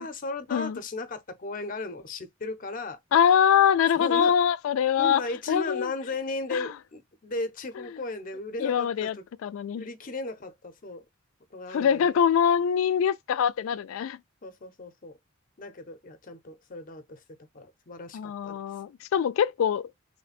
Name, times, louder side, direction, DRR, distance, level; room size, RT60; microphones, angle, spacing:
voice 1, 0.0-3.0 3.9-4.3 5.0-9.2 9.8-11.0 11.5-12.0 14.4-15.2 15.6-17.2 17.5-18.6, left 2 dB, 45° left, 0.6 m, -36 dB
voice 2, 3.1-5.2 5.5-5.9 6.5-6.7 8.6-9.2 9.4-9.9 11.7-14.2 18.1-19.9, left 8 dB, 90° left, 0.3 m, -23 dB
3.2 x 2.2 x 4.0 m
head